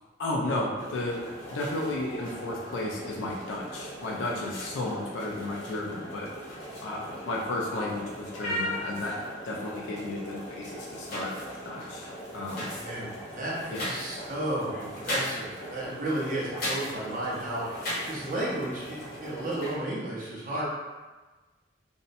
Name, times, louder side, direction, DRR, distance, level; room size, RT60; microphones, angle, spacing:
voice 1, 0.2-1.2 1.5-6.3 6.8-11.3 11.6-12.7 13.7-13.9, left 2 dB, 85° left, -2 dB, 0.4 m, -33 dB
sound 1, 0.8-19.8, equal, 50° left, 0.7 m, -38 dB
voice 2, 12.8-20.6, right 1 dB, 45° right, -6 dB, 0.7 m, -33 dB
2.6 x 2.0 x 2.5 m, 1.3 s
head